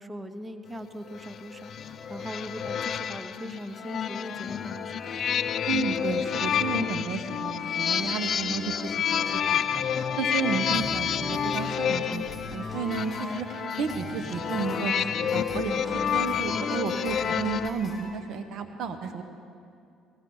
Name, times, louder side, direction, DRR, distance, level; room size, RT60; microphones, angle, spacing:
voice 1, 0.0-5.1, equal, 20° right, 9 dB, 0.8 m, -40 dB
sound 1, 1.1-17.7, left 8 dB, 55° left, 0.4 m, -29 dB
sound 2, 1.8-18.0, left 1 dB, 5° left, 4.5 m, -42 dB
voice 2, 5.7-19.2, right 5 dB, 65° right, 8 dB, 1.1 m, -32 dB
17.5 x 16.5 x 3.9 m, 2.4 s
supercardioid pair, 75°, 0 cm